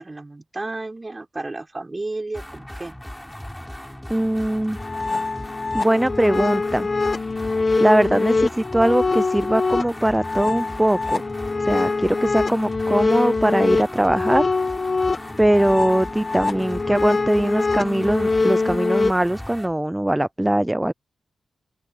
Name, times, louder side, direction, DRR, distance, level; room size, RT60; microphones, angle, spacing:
voice 1, 0.0-3.0, right 2 dB, 30° right, 6.4 m, -32 dB
sound 1, 2.3-19.7, left 1 dB, 10° left, 4.5 m, -37 dB
voice 2, 4.1-4.8 5.7-6.9 7.8-11.2 11.6-14.5 15.4-20.9, right 1 dB, 10° right, 0.5 m, -21 dB
sound 2, 4.8-19.1, left 3 dB, 40° left, 1.2 m, -23 dB
open air
supercardioid pair, 45°, 0 cm